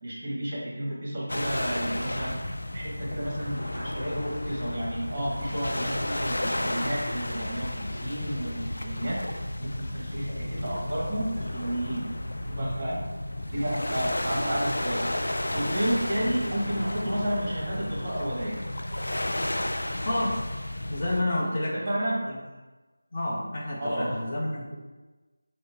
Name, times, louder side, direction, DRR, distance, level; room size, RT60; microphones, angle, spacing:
voice 1, 0.0-9.3 9.6-12.1 12.5-13.1 13.5-15.1 15.5-18.6 21.7-22.3 23.8-24.2, right 1 dB, 25° right, -5 dB, 1.2 m, -31 dB
sound 1, 1.3-21.2, left 1 dB, 65° left, 0.3 m, -32 dB
voice 2, 20.0-20.4 20.9-21.8 22.2-22.4 23.1-24.8, left 1 dB, 30° left, -5 dB, 0.8 m, -30 dB
5.2 x 2.1 x 3.5 m, 1.2 s
figure-of-eight pair, 165°, 0 cm